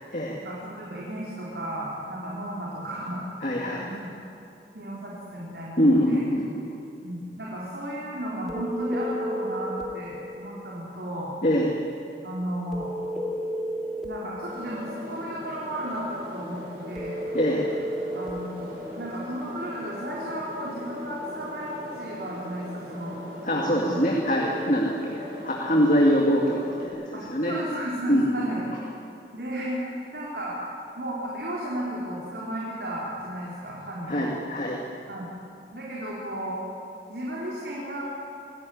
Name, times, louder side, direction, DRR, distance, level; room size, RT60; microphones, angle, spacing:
voice 1, 0.3-3.2 3.7-4.1 4.7-6.3 7.0-11.3 12.2-12.9 14.0-16.6 16.9-17.2 18.1-18.7 18.9-23.2 23.5-24.0 27.1-28.6 29.3-30.6 31.0-34.3 35.1-35.3 35.7-36.6 37.1-38.0, right 1 dB, 70° right, -5 dB, 4.4 m, -34 dB
voice 2, 3.4-3.8 5.8-6.5 11.4-11.7 17.3-17.7 23.4-27.6 28.1-28.3 34.1-34.8, equal, 45° left, -1 dB, 2.3 m, -23 dB
sound 1, 8.5-9.9 12.7-14.1 17.0-18.4, equal, ahead, 2.7 m, -31 dB
sound 2, 14.5-26.8, left 1 dB, 55° right, 6.6 m, -40 dB
25.5 x 17.0 x 9.6 m, 2.7 s
head